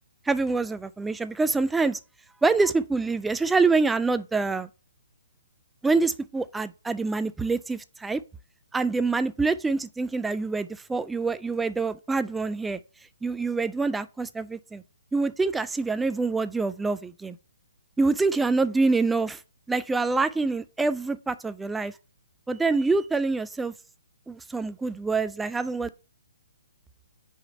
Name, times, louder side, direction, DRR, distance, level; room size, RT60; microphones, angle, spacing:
voice 1, 0.3-2.0 2.4-4.7 5.8-8.2 8.7-12.8 13.2-14.8 15.1-17.4 18.0-19.4 19.7-21.9 22.5-23.7 24.3-25.9, right 3 dB, 5° right, 0.3 m, -26 dB
5.1 x 5.0 x 4.0 m
hypercardioid pair, 155°, 0 cm